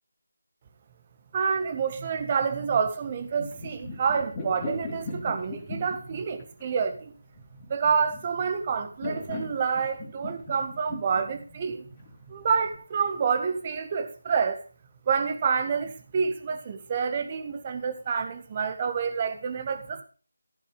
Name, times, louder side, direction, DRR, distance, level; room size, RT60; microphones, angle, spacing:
voice 1, 1.3-7.1 7.7-11.8 12.3-14.6 15.1-20.0, right 6 dB, 25° right, 1.4 m, -28 dB
sound 1, 3.0-12.8, left 2 dB, 20° left, 3.5 m, -39 dB
14.5 x 7.2 x 5.0 m
figure-of-eight pair, 160°, 0 cm